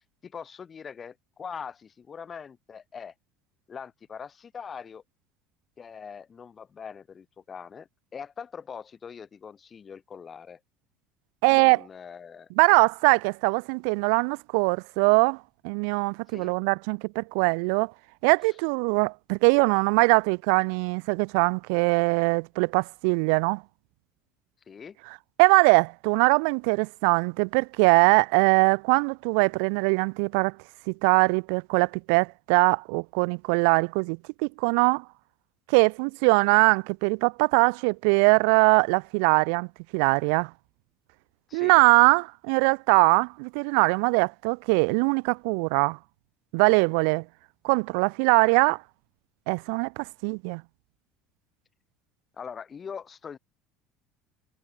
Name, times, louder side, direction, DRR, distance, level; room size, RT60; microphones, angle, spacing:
voice 1, 0.0-3.1 3.7-5.0 5.8-10.6 11.5-12.5 16.3-16.5 18.5-18.6 24.7-25.0 41.5-41.7 52.4-53.4, left 6 dB, 20° left, 3.5 m, -42 dB
voice 2, 11.4-11.8 12.6-17.9 18.2-23.6 25.4-30.6 30.9-35.0 35.7-40.5 41.5-46.0 46.5-47.2 47.6-48.8 49.5-50.6, right 40 dB or more, 75° right, 0.7 m, -22 dB
cardioid pair, 170°, 0 cm